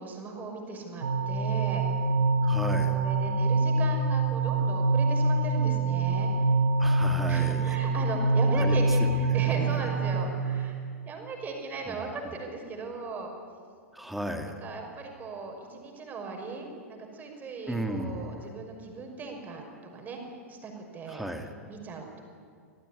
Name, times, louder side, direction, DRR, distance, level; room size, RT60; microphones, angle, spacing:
voice 1, 0.0-1.8 2.8-6.3 7.3-10.7 11.0-13.3 14.6-20.2 20.5-21.3 21.7-22.2, right 4 dB, 20° right, 2 dB, 5.8 m, -38 dB
sound 1, 1.0-10.3, right 2 dB, 65° right, 2.0 m, -25 dB
voice 2, 2.4-3.0 6.8-7.8 8.5-9.9 11.9-12.0 13.9-14.6 17.7-18.5 21.1-21.5, right 1 dB, ahead, 5 dB, 2.5 m, -35 dB
26.5 x 18.0 x 9.9 m, 2.3 s
figure-of-eight pair, 100°, 8 cm